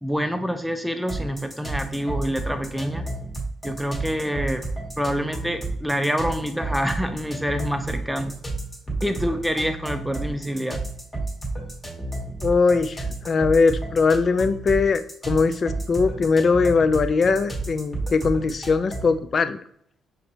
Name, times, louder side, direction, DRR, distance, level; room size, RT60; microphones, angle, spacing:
voice 1, 0.0-3.1 3.6-4.7 5.0-8.4 9.0-10.9, equal, ahead, 7 dB, 0.6 m, -26 dB
sound 1, 1.1-19.2, right 2 dB, 15° left, 1.3 m, -32 dB
voice 2, 12.4-19.6, left 4 dB, 45° left, 11 dB, 0.3 m, -21 dB
5.1 x 3.0 x 2.9 m, 0.66 s
cardioid pair, 90°, 0 cm